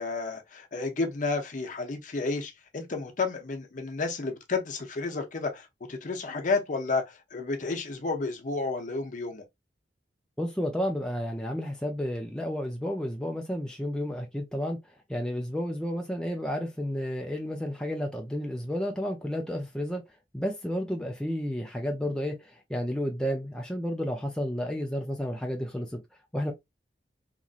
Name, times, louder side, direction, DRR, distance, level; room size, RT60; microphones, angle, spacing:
voice 1, 0.0-9.4, left 3 dB, 45° left, 0.6 m, -31 dB
voice 2, 10.4-14.8 15.1-20.0 20.3-26.0 26.3-26.5, equal, 5° left, 0.4 m, -31 dB
3.0 x 2.5 x 2.4 m
head